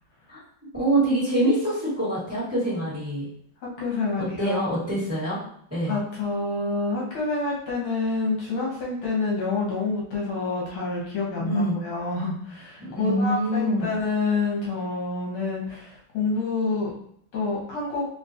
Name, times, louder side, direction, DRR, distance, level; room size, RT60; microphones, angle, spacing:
voice 1, 0.7-3.3 4.2-5.4 5.7-6.0 11.4-11.7 12.8-13.9, right 1 dB, 10° right, -11 dB, 1.0 m, -25 dB
voice 2, 3.8-4.6 5.9-16.9 17.3-18.1, left 3 dB, 70° left, -4 dB, 1.6 m, -27 dB
3.6 x 2.3 x 2.7 m, 0.65 s
omnidirectional pair, 2.4 m